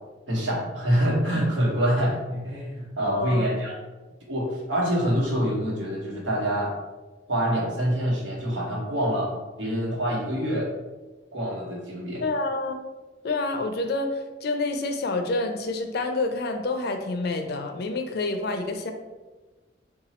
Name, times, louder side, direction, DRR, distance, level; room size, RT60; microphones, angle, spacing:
voice 1, 0.3-3.7 4.3-6.7 7.3-9.3 9.6-10.7 11.3-12.2, equal, 90° right, -3 dB, 1.1 m, -26 dB
voice 2, 3.1-3.4 12.2-12.8 13.2-18.9, left 2 dB, 55° left, 6 dB, 0.4 m, -28 dB
2.9 x 2.3 x 4.2 m, 1.2 s
head